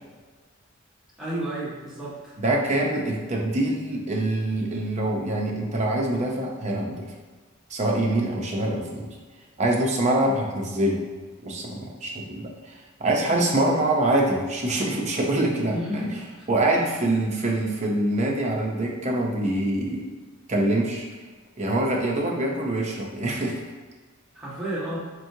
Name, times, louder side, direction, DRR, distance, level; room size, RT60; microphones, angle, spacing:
voice 1, 1.2-2.3 15.7-16.5 16.7-16.8 24.3-25.0, right 1 dB, ahead, -11 dB, 1.3 m, -32 dB
voice 2, 2.4-7.1 7.7-9.1 9.6-11.0 11.4-12.7 13.0-16.1 16.5-20.0 20.5-21.1 21.6-23.6, right 1 dB, 35° right, -1 dB, 0.6 m, -25 dB
4.4 x 3.0 x 2.7 m, 1.4 s
head